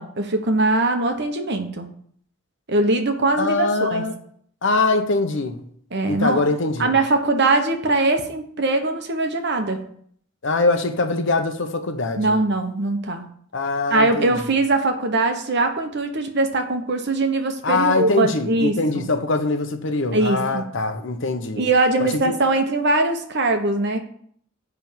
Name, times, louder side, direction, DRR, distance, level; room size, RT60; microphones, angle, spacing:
voice 1, 0.0-1.9 2.7-4.0 5.9-6.4 6.8-9.8 12.2-13.3 13.9-19.1 20.1-20.7 21.6-24.0, right 2 dB, 55° right, 1.2 m, -21 dB
voice 2, 3.4-4.1 4.6-5.6 6.1-6.9 10.4-12.4 13.5-14.4 17.6-21.7 22.0-22.3, left 3 dB, 65° left, 1.0 m, -23 dB
10.5 x 3.6 x 7.3 m
head